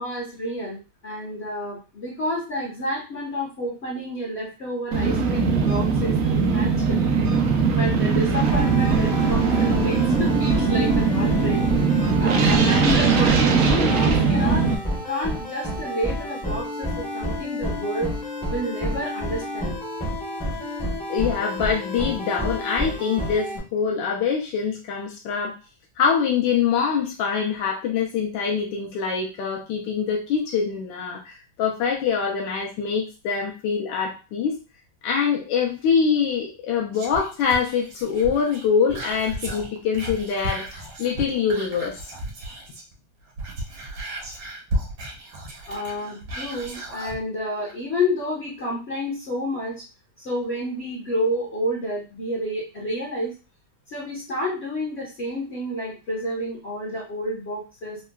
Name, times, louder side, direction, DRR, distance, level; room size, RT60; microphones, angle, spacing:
voice 1, 0.0-7.1 7.7-11.6 12.2-14.6 15.0-18.1 18.5-19.8 45.7-49.7 50.2-53.3 53.9-58.0, left 1 dB, 45° left, -5 dB, 0.8 m, -29 dB
sound 1, 4.9-14.7, right 5 dB, 90° right, 0.7 m, -20 dB
sound 2, 8.4-23.6, left 1 dB, 5° left, 0.5 m, -30 dB
voice 2, 21.1-25.6 26.0-34.5 35.0-42.0, left 6 dB, 75° left, -1 dB, 1.2 m, -24 dB
Whispering, 36.9-42.9 43.3-47.2 47.7-47.8, right 1 dB, 65° right, 1.2 m, -34 dB
3.7 x 2.1 x 2.2 m, 0.32 s
omnidirectional pair, 2.1 m